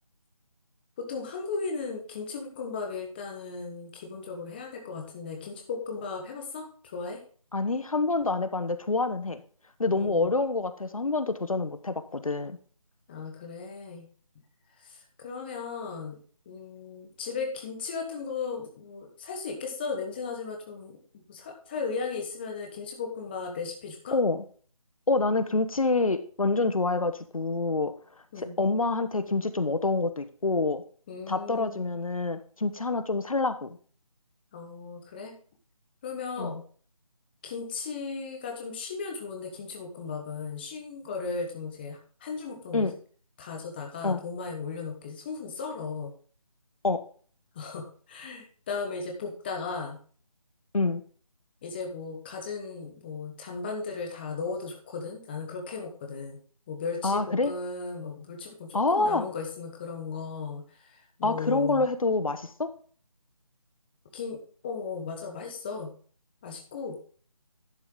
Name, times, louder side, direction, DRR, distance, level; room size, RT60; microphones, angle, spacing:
voice 1, 1.0-7.2 9.9-10.3 13.1-14.1 14.8-16.2 16.4-24.2 28.3-28.6 31.1-31.9 34.5-35.3 36.0-36.6 37.4-42.9 43.4-46.1 47.5-50.0 51.6-56.4 56.7-61.9 64.1-65.9 66.4-67.0, left 5 dB, 15° left, 2 dB, 1.2 m, -36 dB
voice 2, 7.5-9.4 9.8-12.6 24.1-24.4 25.1-27.9 28.4-30.8 31.3-33.7 36.4-36.6 42.7-42.9 44.0-44.2 46.8-47.0 50.7-51.0 57.0-57.5 58.7-59.3 61.2-62.7, left 3 dB, 70° left, 11 dB, 1.1 m, -27 dB
11.0 x 6.3 x 3.8 m, 0.43 s
figure-of-eight pair, 160°, 19 cm